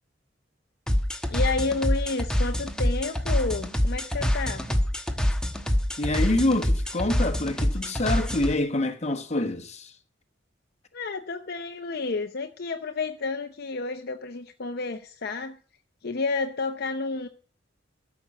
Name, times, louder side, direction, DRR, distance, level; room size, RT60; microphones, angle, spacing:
sound 1, 0.9-8.5, equal, 5° left, 1.1 m, -26 dB
voice 1, 1.3-4.7 10.9-15.6 16.0-17.3, left 3 dB, 55° left, 0.7 m, -30 dB
voice 2, 6.0-9.9, left 2 dB, 35° left, 1.3 m, -26 dB
13.5 x 6.2 x 7.4 m
head